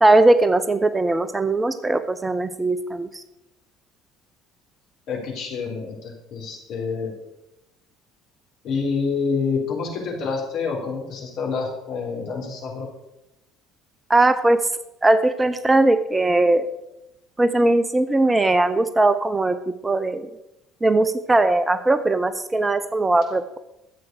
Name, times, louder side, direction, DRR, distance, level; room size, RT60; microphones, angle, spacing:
voice 1, 0.0-3.2 14.1-14.6 15.0-16.7 17.4-20.3 20.8-23.6, right 2 dB, 15° right, 12 dB, 0.8 m, -19 dB
voice 2, 5.1-7.1 8.6-12.9, left 5 dB, 55° left, 0 dB, 3.9 m, -27 dB
13.0 x 7.8 x 6.5 m, 0.90 s
figure-of-eight pair, 55°, 0 cm